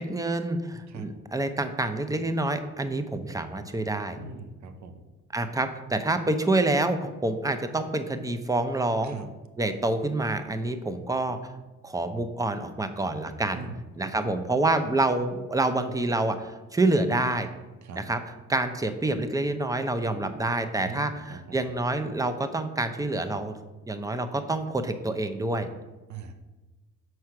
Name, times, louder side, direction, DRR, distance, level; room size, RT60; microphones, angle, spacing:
voice 1, 0.0-4.2 5.3-9.2 9.6-11.4 11.8-13.6 13.9-17.5 18.0-18.2 18.5-23.5 23.9-25.7, right 2 dB, 10° right, 9 dB, 0.7 m, -27 dB
voice 2, 4.2-5.0 9.0-9.3 13.5-14.3 17.8-18.0 20.8-21.7 26.1-26.3, right 4 dB, 70° right, 8 dB, 1.0 m, -41 dB
6.3 x 4.7 x 5.9 m, 1.1 s
cardioid pair, 90°, 30 cm